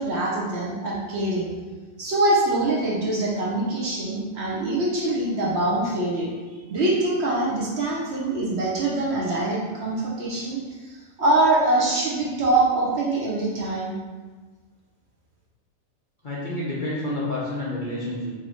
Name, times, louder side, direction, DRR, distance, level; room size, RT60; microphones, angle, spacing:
voice 1, 0.0-1.5 2.0-6.3 6.7-10.6 10.8-13.9, right 2 dB, 60° right, -4 dB, 0.9 m, -24 dB
voice 2, 16.2-18.3, left 1 dB, 50° left, -7 dB, 0.6 m, -29 dB
4.7 x 2.7 x 2.9 m, 1.4 s
omnidirectional pair, 1.5 m